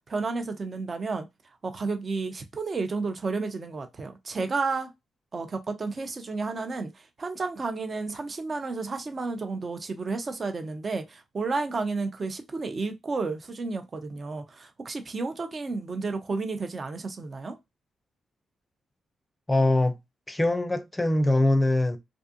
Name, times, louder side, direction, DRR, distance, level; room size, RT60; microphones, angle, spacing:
voice 1, 0.1-1.3 1.6-4.9 5.3-17.6, right 3 dB, 45° right, 0.6 m, -32 dB
voice 2, 19.5-19.9 20.3-22.0, left 1 dB, 15° left, 0.5 m, -22 dB
2.5 x 2.3 x 2.6 m
hypercardioid pair, 45°, 0 cm